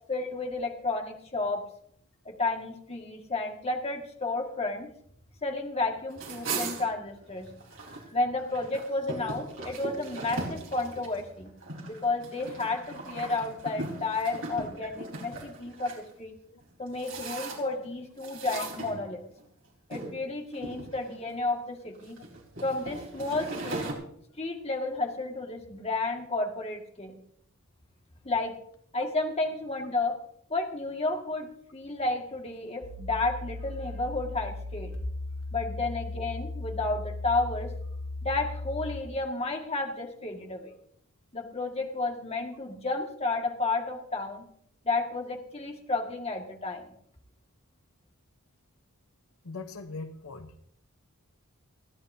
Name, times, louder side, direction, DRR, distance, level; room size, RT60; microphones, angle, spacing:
voice 1, 0.1-1.7 2.3-4.9 5.4-7.5 8.1-11.5 11.9-16.3 16.8-19.2 19.9-22.2 22.6-23.9 24.4-27.2 28.2-28.6 28.9-30.2 30.5-34.9 35.5-37.7 38.2-40.7 41.3-44.5 44.8-46.9, left 3 dB, 30° left, 2 dB, 1.9 m, -32 dB
sound 1, 6.1-8.1 8.4-16.0 16.6-17.8 18.2-19.4 19.9-20.1 20.5-21.3 22.0-23.9, right 3 dB, 65° right, 4.0 m, -38 dB
sound 2, 32.8-39.0, left 2 dB, 60° left, 1.8 m, -37 dB
voice 2, 49.4-50.6, left 3 dB, 80° left, 8 dB, 0.9 m, -40 dB
29.5 x 10.5 x 2.8 m, 0.67 s
head